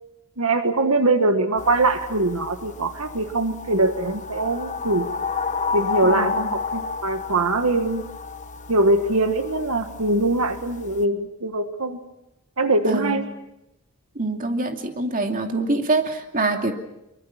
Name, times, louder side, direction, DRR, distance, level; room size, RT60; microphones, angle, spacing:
voice 1, 0.4-5.1 5.7-8.0 8.7-12.0 12.6-13.2, right 2 dB, 80° right, 8 dB, 1.5 m, -22 dB
sound 1, 1.6-11.0, left 5 dB, 35° left, 1.2 m, -31 dB
voice 2, 6.0-6.4 12.9-13.2 14.2-16.7, right 2 dB, 40° right, 4 dB, 2.5 m, -25 dB
24.0 x 23.5 x 7.3 m, 0.90 s
head